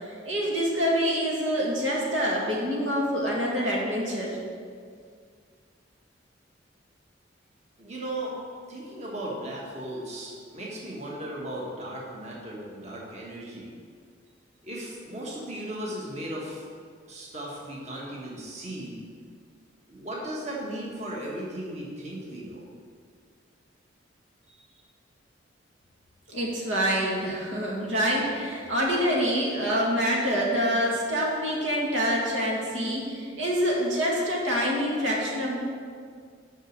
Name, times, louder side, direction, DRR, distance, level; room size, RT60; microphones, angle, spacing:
voice 1, 0.1-4.4 26.3-35.6, equal, 85° right, -3 dB, 1.8 m, -26 dB
voice 2, 7.8-8.4 8.7-13.7 14.6-16.6 17.1-19.0 19.9-22.6, right 1 dB, 35° right, -4 dB, 1.4 m, -36 dB
6.4 x 6.1 x 6.6 m, 2.1 s
head